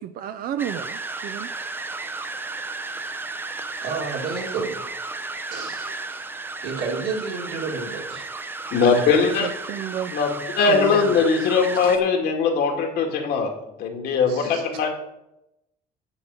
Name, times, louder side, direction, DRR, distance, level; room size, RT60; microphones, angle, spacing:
voice 1, 0.0-1.5 9.4-10.1 10.7-11.1, right 10 dB, 60° right, 11 dB, 0.5 m, -31 dB
sound 1, 0.6-12.0, right 3 dB, 10° right, 0.5 m, -33 dB
voice 2, 3.8-4.9 5.5-6.2 6.6-8.3 11.8-11.9 14.3-14.6, right 4 dB, 80° right, -1 dB, 2.7 m, -31 dB
voice 3, 8.7-9.5 10.1-13.5 13.8-14.9, left 5 dB, 70° left, 2 dB, 2.1 m, -20 dB
9.9 x 4.5 x 7.7 m, 0.88 s
cardioid pair, 155°, 17 cm